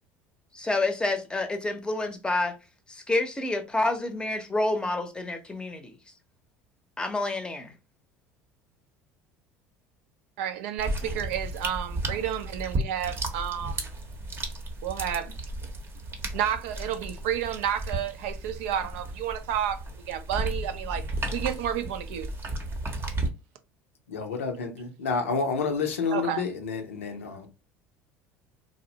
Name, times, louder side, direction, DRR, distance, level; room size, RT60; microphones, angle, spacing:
voice 1, 0.5-2.6 2.9-6.0 7.0-7.7, left 2 dB, 10° left, 0.6 m, -28 dB
voice 2, 10.4-13.8 14.8-15.4 16.3-21.0 21.3-22.3 26.1-26.4, right 9 dB, 75° right, 0.4 m, -31 dB
sound 1, 10.8-23.3, right 2 dB, 35° right, 0.7 m, -34 dB
voice 3, 24.1-27.5, left 5 dB, 90° left, 0.5 m, -29 dB
2.6 x 2.0 x 2.7 m
hypercardioid pair, 75°, 7 cm